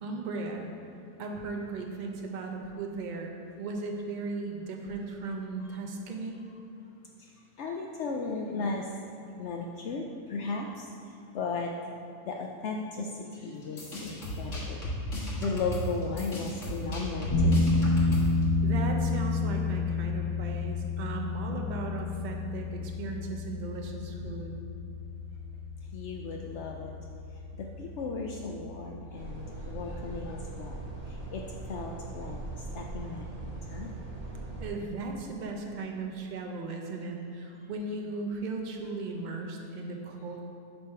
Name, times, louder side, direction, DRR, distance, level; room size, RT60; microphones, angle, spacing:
voice 1, 0.0-0.7 1.2-3.3 3.6-6.4 18.6-24.5 34.6-40.4, right 3 dB, 50° right, 1 dB, 0.5 m, -36 dB
voice 2, 7.6-10.9 11.3-11.7 12.2-14.8 15.2-17.7 25.9-26.9 27.6-30.8 31.3-31.4 31.7-32.4 32.7-34.0, left 4 dB, 85° left, 0 dB, 0.6 m, -36 dB
sound 1, 13.6-18.4, equal, 50° left, 1.6 m, -35 dB
sound 2, 17.3-29.6, left 3 dB, 20° left, 0.9 m, -30 dB
sound 3, 29.1-34.7, right 2 dB, 30° right, 0.9 m, -40 dB
8.5 x 3.5 x 5.5 m, 2.6 s
omnidirectional pair, 1.7 m